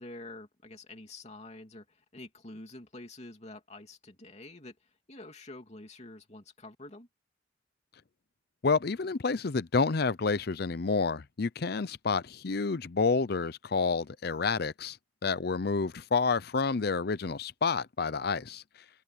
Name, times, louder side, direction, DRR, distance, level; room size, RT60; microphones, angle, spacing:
voice 1, 0.0-7.1, left 2 dB, 35° left, 3.0 m, -47 dB
voice 2, 8.6-15.0 15.2-18.6, left 4 dB, 55° left, 0.6 m, -29 dB
open air
head